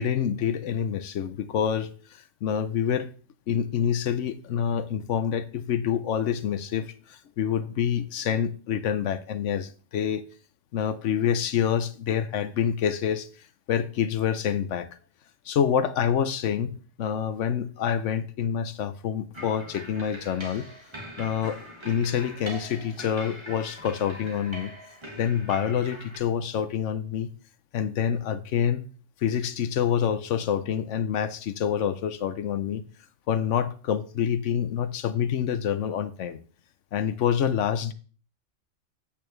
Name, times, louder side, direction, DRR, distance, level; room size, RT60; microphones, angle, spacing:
voice 1, 0.0-3.1 3.5-10.3 10.7-13.3 13.7-14.9 15.5-20.7 21.2-24.7 25.2-27.3 27.7-28.9 29.2-32.9 33.3-36.4 36.9-37.9, left 8 dB, 70° left, 1.0 m, -27 dB
sound 1, 19.3-26.2, equal, 20° right, 1.8 m, -42 dB
8.8 x 8.7 x 3.2 m
omnidirectional pair, 1.3 m